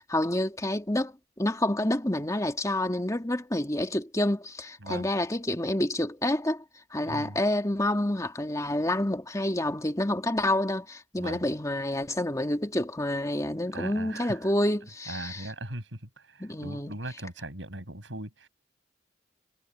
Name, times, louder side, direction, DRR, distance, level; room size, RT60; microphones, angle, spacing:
voice 1, 0.0-6.6 6.9-15.5 16.4-17.0, left 1 dB, 20° left, 2.5 m, -28 dB
voice 2, 7.0-7.4 11.2-11.4 13.7-14.4 15.1-16.0 16.3-18.5, right 1 dB, 75° right, 6.8 m, -39 dB
head